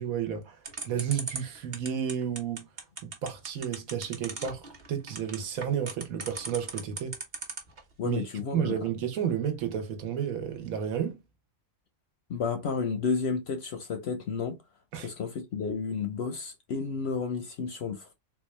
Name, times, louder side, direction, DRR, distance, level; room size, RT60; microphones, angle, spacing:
voice 1, 0.0-2.7 3.0-7.2 8.0-8.2 8.5-11.2 14.9-15.1, right 8 dB, 75° right, 1.2 m, -32 dB
sound 1, 0.6-7.8, right 4 dB, 35° right, 0.9 m, -37 dB
voice 2, 8.0-8.7 12.3-14.6 15.0-18.1, left 5 dB, 60° left, 0.7 m, -31 dB
3.8 x 2.4 x 3.1 m
omnidirectional pair, 1.5 m